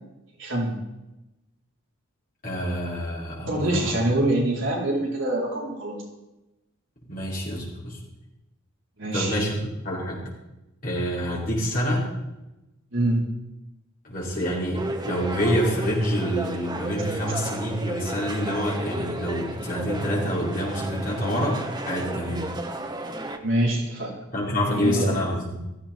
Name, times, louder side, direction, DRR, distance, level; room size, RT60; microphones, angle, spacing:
voice 1, 0.4-0.8 3.5-6.0 9.0-9.4 12.9-13.2 23.4-24.1 24.7-25.2, right 1 dB, 60° right, -3 dB, 4.1 m, -25 dB
voice 2, 2.4-4.0 7.1-8.0 9.1-9.6 9.8-10.2 10.8-12.1 14.0-22.5 24.3-25.6, equal, 40° left, -5 dB, 5.3 m, -27 dB
sound 1, 14.7-23.4, right 1 dB, 20° right, 1.0 m, -33 dB
16.5 x 14.5 x 4.5 m, 0.96 s
head